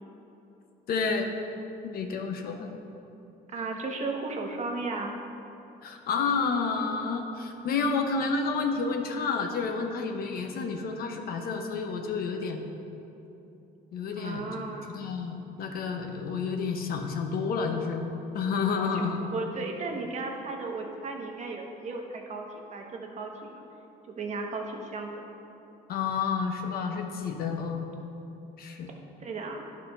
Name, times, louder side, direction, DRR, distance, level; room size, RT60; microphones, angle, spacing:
voice 1, 0.9-1.3 1.8-2.7 5.8-12.6 13.9-14.6 14.9-18.1 18.3-19.2 25.9-27.8 28.6-28.9, left 5 dB, 65° left, 4 dB, 0.9 m, -30 dB
voice 2, 3.5-5.2 14.2-15.0 18.8-23.6 24.1-25.2 29.2-29.6, right 3 dB, 45° right, 2 dB, 1.0 m, -35 dB
11.0 x 4.2 x 5.4 m, 2.9 s
cardioid pair, 110°, 17 cm